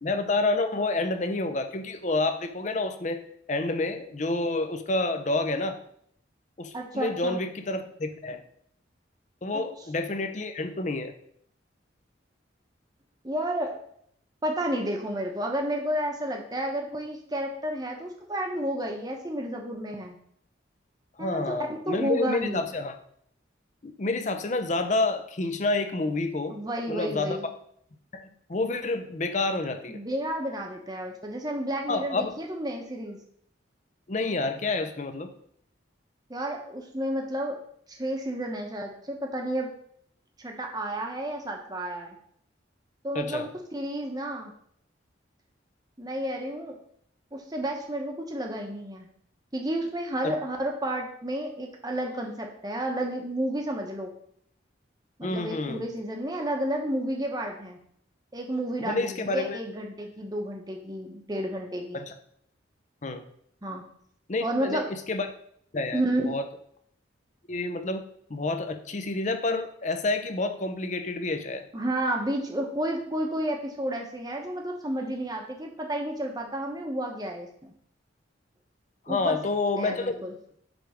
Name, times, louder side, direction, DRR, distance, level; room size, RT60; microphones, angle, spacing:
voice 1, 0.0-3.2 3.5-5.8 6.6-8.4 9.4-11.1 21.2-22.9 23.8-26.6 26.9-27.4 28.1-30.0 31.9-32.3 34.1-35.3 43.1-43.4 50.2-50.3 55.2-55.8 58.8-59.6 61.9-62.1 63.0-63.2 64.3-65.3 65.7-66.0 66.3-66.5 67.5-68.0 68.3-71.7 79.1-80.3, left 2 dB, 40° left, 8 dB, 0.6 m, -29 dB
voice 2, 6.7-7.4 9.5-9.6 13.2-13.8 14.4-20.2 21.2-21.5 21.9-22.6 26.5-27.4 29.9-33.2 36.3-37.6 37.9-39.7 40.4-42.1 43.0-44.5 46.0-46.8 47.3-49.1 49.5-54.1 55.2-57.8 58.3-62.0 63.6-63.8 64.4-64.9 65.9-66.4 71.7-77.7 79.1-79.4 79.8-80.3, right 1 dB, 20° right, 2 dB, 0.9 m, -31 dB
7.1 x 3.5 x 5.0 m, 0.67 s
head